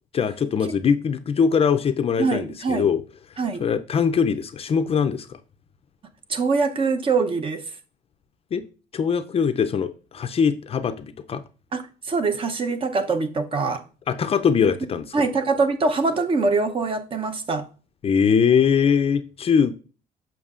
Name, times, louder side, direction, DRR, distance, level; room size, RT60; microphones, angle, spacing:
voice 1, 0.1-3.0 3.6-5.4 8.5-8.6 8.9-11.4 14.1-15.1 18.0-19.8, left 6 dB, 35° left, 0.4 m, -21 dB
voice 2, 2.2-2.9 3.4-3.7 6.3-7.8 11.7-13.8 15.1-17.7, right 4 dB, 30° right, 0.7 m, -23 dB
7.1 x 5.8 x 2.4 m
cardioid pair, 110°, 17 cm